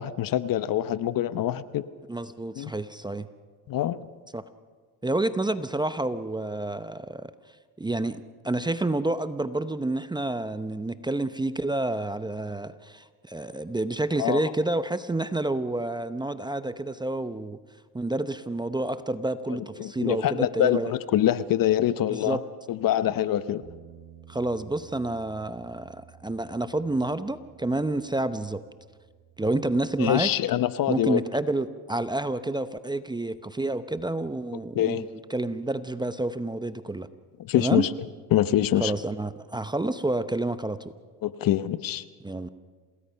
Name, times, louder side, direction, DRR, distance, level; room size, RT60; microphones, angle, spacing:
voice 1, 0.0-1.8 2.6-2.7 3.7-4.0 14.2-14.5 19.5-22.4 22.7-23.6 30.0-31.2 34.7-35.0 37.4-37.9 38.3-38.9 41.2-42.0, left 12 dB, 50° left, 15 dB, 0.9 m, -25 dB
voice 2, 2.1-3.3 4.3-4.4 5.0-7.3 7.8-17.6 17.9-20.9 22.1-22.4 24.3-28.6 29.4-30.3 30.9-37.1 37.6-37.9 38.8-40.9 42.2-42.5, right 2 dB, 10° right, 12 dB, 0.7 m, -29 dB
Bass guitar, 23.6-29.9, right 9 dB, 40° right, 4.2 m, -53 dB
28.0 x 19.0 x 5.7 m, 1.5 s
supercardioid pair, 95°, 45 cm